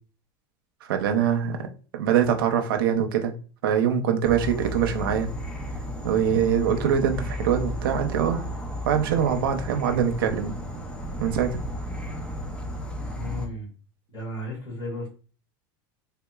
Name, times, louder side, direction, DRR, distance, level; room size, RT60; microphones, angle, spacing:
voice 1, 0.8-1.7 1.9-3.3 3.6-5.3 6.0-8.4 8.8-10.5 11.2-11.6, right 8 dB, 85° right, 5 dB, 0.6 m, -23 dB
Insect / Frog, 4.2-13.4, equal, 10° left, 0.5 m, -33 dB
voice 2, 13.1-13.7 14.1-15.1, left 1 dB, 35° left, -1 dB, 1.7 m, -34 dB
3.4 x 2.8 x 2.3 m, 0.36 s
supercardioid pair, 125°, 11 cm